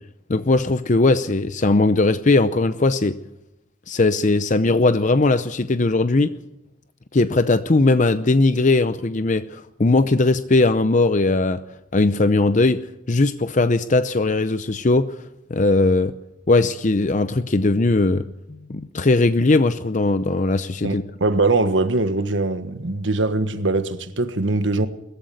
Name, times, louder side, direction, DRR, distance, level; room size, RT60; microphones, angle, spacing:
voice 1, 0.3-3.1 3.9-6.3 7.1-11.6 11.9-12.8 13.1-15.1 15.5-16.1 16.5-18.2 18.5-21.0, left 2 dB, 40° left, 0.7 m, -19 dB
voice 2, 20.8-24.9, right 2 dB, 65° right, 1.4 m, -22 dB
20.5 x 14.5 x 9.2 m
head